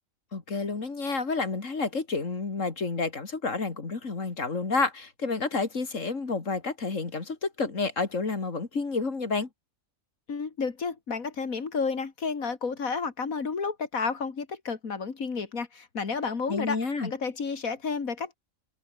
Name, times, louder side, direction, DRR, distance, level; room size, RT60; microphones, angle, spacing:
voice 1, 0.3-9.5 16.5-17.1, left 4 dB, 65° left, 3.0 m, -30 dB
voice 2, 10.3-18.4, left 5 dB, 90° left, 2.7 m, -31 dB
omnidirectional pair, 1.4 m